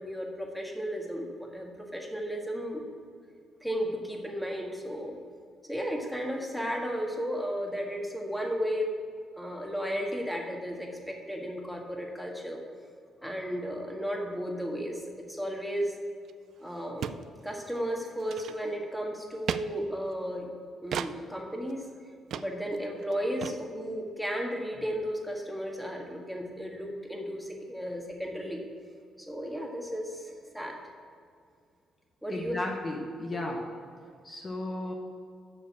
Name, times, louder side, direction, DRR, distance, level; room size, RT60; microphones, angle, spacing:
voice 1, 0.0-2.8 3.6-5.2 5.7-8.9 9.4-12.6 13.2-15.0 15.3-15.9 16.6-17.1 17.4-20.5 20.8-21.8 22.3-28.6 29.2-30.8 32.2-32.6 33.4-33.5, equal, ahead, 1 dB, 1.6 m, -34 dB
sound 1, 16.3-16.4 16.6-16.7 17.0-17.2 17.6-17.8 18.2-18.8 19.5-19.6 20.9-21.1 21.7-21.8 22.3-22.5 22.8-22.9 23.0-23.1 23.4-23.6, right 9 dB, 70° right, 0.3 m, -34 dB
voice 2, 32.3-33.6 34.2-34.9, left 1 dB, 30° left, 0 dB, 1.1 m, -34 dB
7.1 x 6.6 x 7.1 m, 2.2 s
cardioid pair, 90°, 0 cm